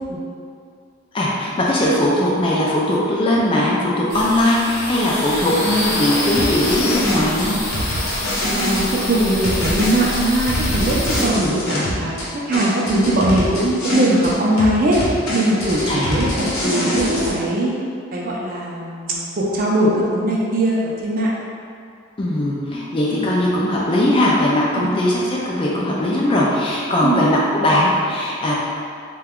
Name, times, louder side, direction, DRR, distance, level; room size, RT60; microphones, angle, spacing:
voice 1, 1.1-7.6 11.3-11.9 15.9-16.2 22.2-28.6, left 1 dB, 25° left, -4 dB, 0.3 m, -19 dB
sound 1, 4.1-11.2, left 1 dB, 55° left, 0.7 m, -26 dB
sound 2, 6.4-8.9 9.4-12.3 12.5-14.3 14.6-17.3, equal, 85° left, 0.8 m, -24 dB
voice 2, 8.6-12.2 12.5-15.0 15.3-17.7 18.1-21.3 23.1-23.3 24.8-24.9 27.0-27.2, right 1 dB, 40° right, -4 dB, 0.4 m, -20 dB
2.8 x 2.2 x 3.5 m, 2.4 s
head